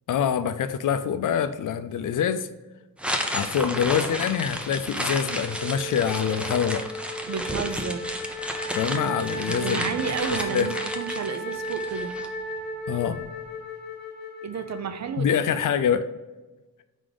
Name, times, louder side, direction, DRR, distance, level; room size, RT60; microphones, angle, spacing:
voice 1, 0.1-2.5 3.3-6.8 8.7-10.0 10.5-10.7 12.9-13.2 15.2-16.0, left 8 dB, 65° left, 11 dB, 0.5 m, -25 dB
sound 1, 3.0-12.3, equal, 5° right, 0.5 m, -32 dB
Wind instrument woodwind instrument, 5.3-15.6, right 1 dB, 30° left, 1.6 m, -35 dB
voice 2, 7.3-8.1 9.5-12.1 14.4-15.4, right 6 dB, 55° right, 9 dB, 0.5 m, -31 dB
4.8 x 3.9 x 4.9 m, 1.1 s
wide cardioid pair, 150°, 33 cm